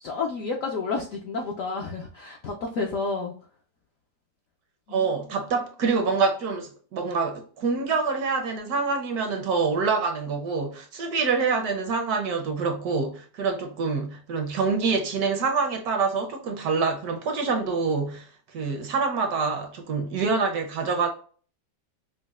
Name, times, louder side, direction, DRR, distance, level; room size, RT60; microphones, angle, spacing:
voice 1, 0.0-3.3 4.9-5.4, left 4 dB, 75° left, 0.7 m, -31 dB
voice 2, 4.9-18.3 18.5-21.1, right 4 dB, 70° right, 1.0 m, -26 dB
5.0 x 2.1 x 2.3 m
omnidirectional pair, 2.0 m